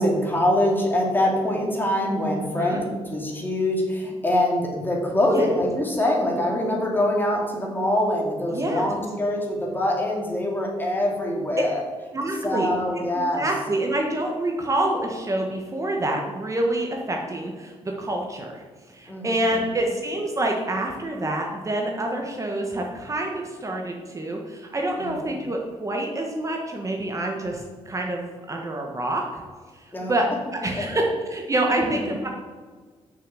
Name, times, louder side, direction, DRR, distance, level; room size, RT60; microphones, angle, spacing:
voice 1, 0.0-11.8 12.4-13.5 19.1-19.4 25.0-25.2 29.9-30.1 31.7-32.0, left 1 dB, 15° left, -1 dB, 2.3 m, -24 dB
voice 2, 8.5-8.9 12.1-12.7 12.9-29.4 29.9-30.3 30.5-32.3, right 1 dB, 25° right, 1 dB, 1.2 m, -27 dB
6.6 x 6.2 x 6.8 m, 1.5 s
cardioid pair, 100°, 12 cm